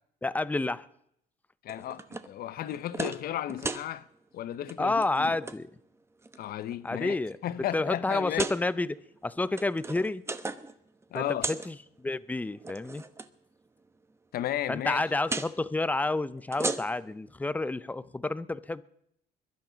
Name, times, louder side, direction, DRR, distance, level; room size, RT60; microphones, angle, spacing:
voice 1, 0.2-0.9 4.8-5.7 6.8-7.4 7.7-10.2 11.1-13.0 14.7-18.8, left 2 dB, 10° left, 0.6 m, -30 dB
voice 2, 1.6-4.1 4.3-5.4 6.4-7.2 7.4-8.5 11.1-11.5 14.3-15.0, left 12 dB, 65° left, 0.8 m, -34 dB
sound 1, 1.7-2.3 2.7-3.2 3.5-3.9 4.5-4.7 5.0-5.6 6.2-6.7 7.3-7.4 8.2-8.6 9.4-10.7 11.0-11.7 12.5-13.3 15.2-15.5 16.4-17.1, right 3 dB, 15° right, 0.9 m, -35 dB
22.0 x 12.0 x 5.2 m
cardioid pair, 110°, 17 cm